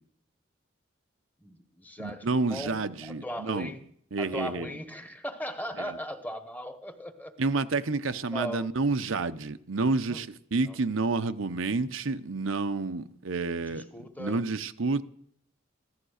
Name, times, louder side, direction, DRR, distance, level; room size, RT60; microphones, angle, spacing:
voice 1, 1.4-3.9 4.2-7.3 8.3-8.7 10.1-10.2 10.6-10.8 13.7-14.4, equal, 10° left, 1.1 m, -38 dB
voice 2, 2.0-3.7 4.1-4.7 5.8-6.0 7.4-13.8 14.2-15.0, right 3 dB, 85° right, 0.8 m, -29 dB
15.5 x 12.5 x 6.5 m
head